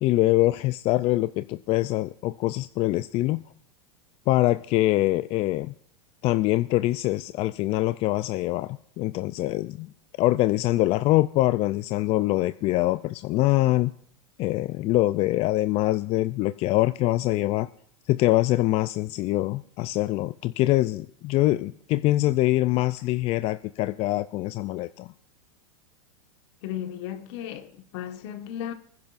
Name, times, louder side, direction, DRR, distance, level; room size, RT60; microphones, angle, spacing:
voice 1, 0.0-3.4 4.3-5.7 6.2-9.9 10.2-13.9 14.4-17.7 18.1-25.1, left 17 dB, 40° left, 0.4 m, -24 dB
voice 2, 26.6-28.7, left 10 dB, 60° left, 1.5 m, -35 dB
26.0 x 10.5 x 2.5 m
hypercardioid pair, 120°, 16 cm